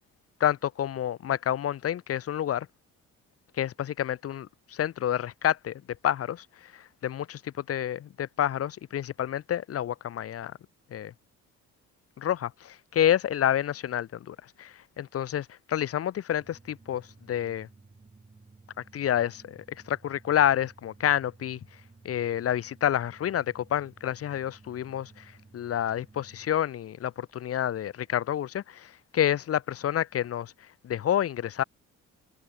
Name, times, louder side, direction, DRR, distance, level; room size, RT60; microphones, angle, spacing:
voice 1, 0.4-2.7 3.5-10.6 10.9-11.1 12.2-17.7 18.9-21.6 22.0-31.6, left 10 dB, 50° left, 0.8 m, -29 dB
sound 1, 16.4-26.5, right 3 dB, 20° right, 4.7 m, -55 dB
cardioid pair, 90°, 30 cm